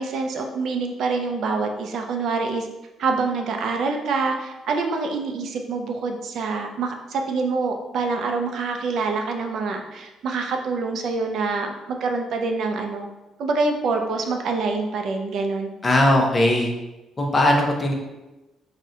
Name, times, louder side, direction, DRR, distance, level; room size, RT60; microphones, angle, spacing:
voice 1, 0.0-2.7 3.0-13.1 13.4-15.7, right 4 dB, 60° right, 4 dB, 0.3 m, -26 dB
voice 2, 15.8-16.7 17.2-17.9, left 1 dB, 20° left, 1 dB, 0.5 m, -19 dB
2.6 x 2.1 x 3.6 m, 1.0 s
cardioid pair, 140°, 0 cm